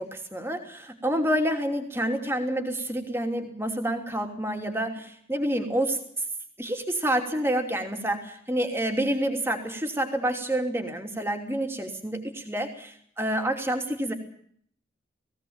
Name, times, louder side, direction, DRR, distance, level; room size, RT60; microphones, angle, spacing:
voice 1, 0.0-6.0 6.6-14.1, right 1 dB, 10° right, 4 dB, 2.9 m, -28 dB
19.5 x 17.0 x 8.8 m, 0.63 s
head